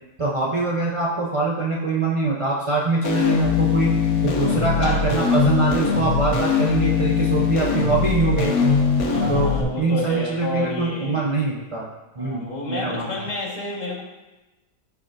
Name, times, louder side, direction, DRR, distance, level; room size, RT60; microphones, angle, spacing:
voice 1, 0.2-3.9 4.2-8.6 9.3-11.9 12.2-13.2, right 3 dB, 55° right, -5 dB, 0.3 m, -24 dB
sound 1, 3.0-9.6, left 6 dB, 65° left, 1.3 m, -21 dB
voice 2, 9.0-11.2 12.2-14.0, left 2 dB, 25° left, -5 dB, 1.5 m, -29 dB
13.0 x 4.8 x 2.6 m, 1.1 s
omnidirectional pair, 1.8 m